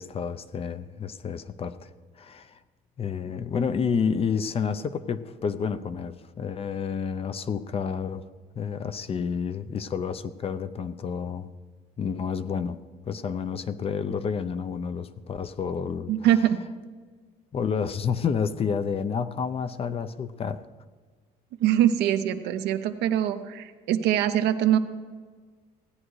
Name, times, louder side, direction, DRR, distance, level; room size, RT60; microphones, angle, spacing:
voice 1, 0.0-1.9 2.2-2.6 3.0-8.3 8.6-11.5 12.0-12.8 13.1-16.3 17.5-20.6, left 6 dB, 35° left, 12 dB, 0.5 m, -30 dB
voice 2, 16.1-16.6 21.6-24.8, right 11 dB, 85° right, 8 dB, 0.8 m, -23 dB
17.0 x 9.8 x 3.2 m, 1.5 s
cardioid pair, 110°, 17 cm